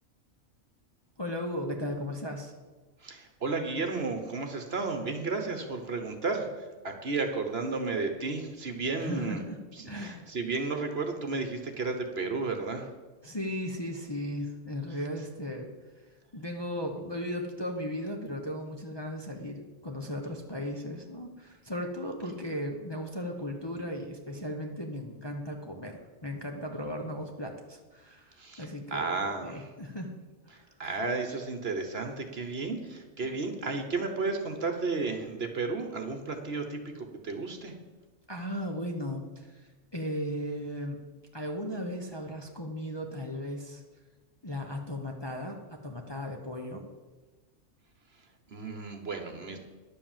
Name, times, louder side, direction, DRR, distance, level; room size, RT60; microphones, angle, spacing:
voice 1, 1.2-2.5 8.9-9.6 9.8-10.3 13.2-30.1 30.4-30.8 38.3-41.0 41.3-44.0 44.4-46.8, equal, 20° left, 1 dB, 1.0 m, -36 dB
voice 2, 3.0-9.4 9.9-12.9 28.4-29.7 30.5-37.8 48.5-49.6, right 3 dB, 50° right, 5 dB, 1.3 m, -33 dB
11.0 x 7.7 x 7.4 m, 1.3 s
omnidirectional pair, 1.4 m